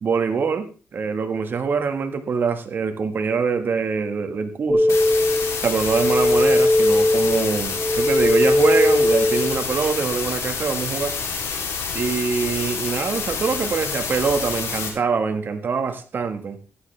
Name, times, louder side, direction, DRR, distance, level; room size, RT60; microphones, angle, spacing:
voice 1, 0.0-4.9 5.6-11.2 11.9-16.6, right 5 dB, 50° right, 7 dB, 1.6 m, -24 dB
sound 1, 4.7-9.7, left 1 dB, 5° left, 4.1 m, -19 dB
sound 2, 4.9-14.9, left 5 dB, 80° left, 3.1 m, -28 dB
14.5 x 10.0 x 3.4 m, 0.34 s
cardioid pair, 110°, 5 cm